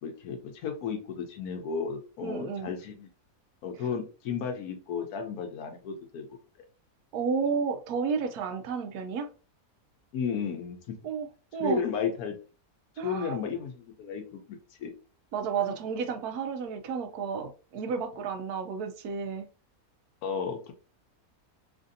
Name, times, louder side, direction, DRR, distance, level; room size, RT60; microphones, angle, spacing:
voice 1, 0.0-3.1 3.6-6.2 10.1-10.9 11.6-12.3 13.0-14.9 20.2-20.7, left 6 dB, 80° left, 4 dB, 1.1 m, -33 dB
voice 2, 2.2-2.7 7.1-9.3 11.0-11.3 11.5-11.8 13.0-13.4 15.3-19.5, right 6 dB, 85° right, 6 dB, 1.1 m, -31 dB
3.2 x 2.5 x 2.5 m, 0.35 s
omnidirectional pair, 1.6 m